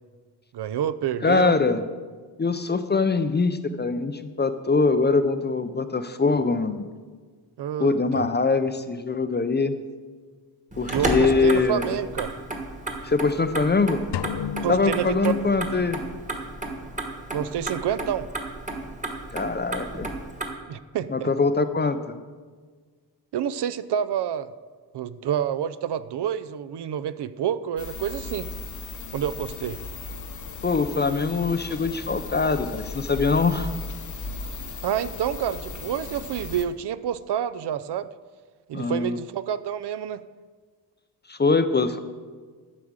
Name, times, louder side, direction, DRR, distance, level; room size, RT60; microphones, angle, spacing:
voice 1, 0.5-1.5 7.6-8.3 10.9-12.3 14.6-15.3 15.7-15.9 17.3-18.3 20.7-21.3 23.3-24.5 24.9-28.5 29.1-29.8 34.8-38.1 38.7-40.2, right 9 dB, 70° right, 14 dB, 0.5 m, -28 dB
voice 2, 1.2-1.8 2.4-6.8 7.8-9.8 10.8-12.0 13.0-14.0 14.7-16.0 19.3-20.1 21.1-22.2 30.6-33.7 38.7-39.2 41.3-42.0, left 4 dB, 25° left, 10 dB, 0.4 m, -23 dB
Motor vehicle (road), 10.7-20.5, right 2 dB, 20° right, 1.2 m, -33 dB
sound 1, 14.1-16.2, left 8 dB, 85° left, 0.5 m, -33 dB
sound 2, 27.8-36.7, left 3 dB, 45° left, 0.8 m, -36 dB
11.5 x 4.9 x 7.3 m, 1.5 s
wide cardioid pair, 165°, 41 cm